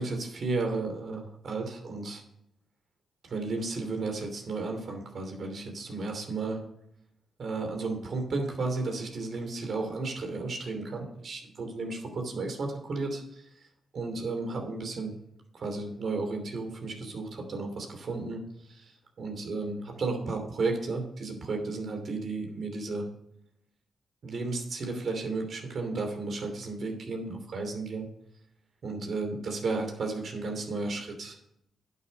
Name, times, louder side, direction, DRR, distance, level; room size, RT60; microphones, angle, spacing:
voice 1, 0.0-2.2 3.3-6.6 7.4-13.7 13.9-15.1 15.5-18.9 19.2-23.1 24.2-28.1 28.8-31.4, right 3 dB, 60° right, 4 dB, 2.9 m, -33 dB
11.0 x 6.7 x 5.2 m, 0.74 s
supercardioid pair, 55°, 0 cm